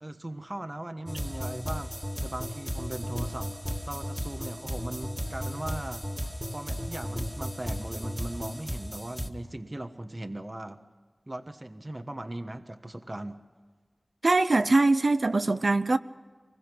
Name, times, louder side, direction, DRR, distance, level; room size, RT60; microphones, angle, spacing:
voice 1, 0.0-10.8 11.3-13.4, right 1 dB, 35° right, 1.3 m, -39 dB
sound 1, 1.1-9.3, equal, 10° right, 2.0 m, -35 dB
voice 2, 14.2-16.0, right 2 dB, 75° right, 0.7 m, -22 dB
24.0 x 21.0 x 6.1 m
wide cardioid pair, 40°, 0 cm